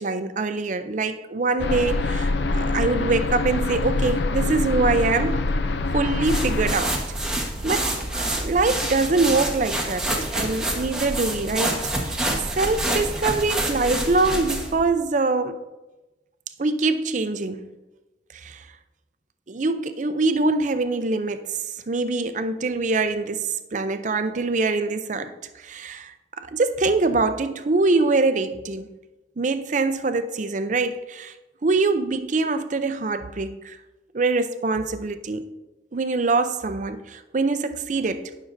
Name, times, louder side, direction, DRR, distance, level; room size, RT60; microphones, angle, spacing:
voice 1, 0.0-5.4 5.9-7.0 7.4-12.2 12.6-15.6 16.6-17.7 18.3-18.6 19.5-25.3 25.6-28.9 29.4-31.3 31.6-33.8 34.1-35.5 35.9-38.2, right 3 dB, 40° right, 0.5 m, -24 dB
sound 1, 1.6-6.8, left 3 dB, 70° left, 0.5 m, -24 dB
sound 2, 6.2-14.8, right 1 dB, 5° right, 1.2 m, -27 dB
17.0 x 6.2 x 2.6 m
head